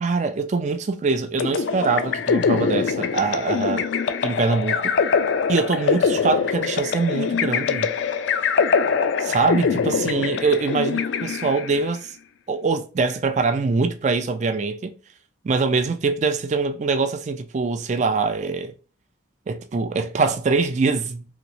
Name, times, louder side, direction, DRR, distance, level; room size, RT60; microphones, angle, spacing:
voice 1, 0.0-3.9 4.2-4.9 5.5-7.9 9.2-12.2 12.5-15.0 15.4-18.7 19.5-21.2, right 4 dB, 35° right, 0.3 m, -23 dB
sound 1, 1.4-11.8, left 6 dB, 65° left, 0.3 m, -23 dB
3.0 x 2.9 x 2.6 m
head